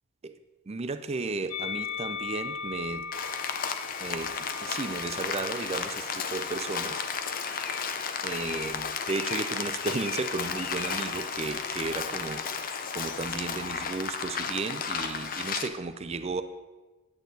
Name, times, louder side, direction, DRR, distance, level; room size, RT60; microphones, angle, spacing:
voice 1, 0.7-3.0 4.0-7.0 8.2-12.4 12.9-16.4, right 3 dB, 30° right, 10 dB, 0.4 m, -34 dB
Musical instrument, 1.5-7.9 8.7-9.7, left 6 dB, 90° left, 0.7 m, -40 dB
Rain, 3.1-15.7, left 6 dB, 40° left, 0.5 m, -33 dB
9.7 x 8.5 x 3.9 m, 1.2 s
head